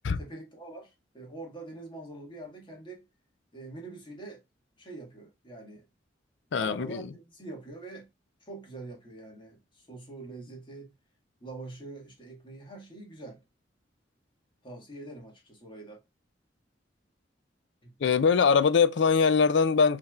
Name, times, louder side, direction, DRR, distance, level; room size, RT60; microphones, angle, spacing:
voice 1, 0.2-3.1 3.5-4.4 4.8-5.9 6.6-8.1 8.5-10.9 11.4-13.4 14.6-16.0 17.8-18.0, right 2 dB, 25° left, 1.7 m, -44 dB
voice 2, 6.5-7.0 18.0-20.0, left 5 dB, 70° left, 0.4 m, -22 dB
5.5 x 3.4 x 2.3 m
head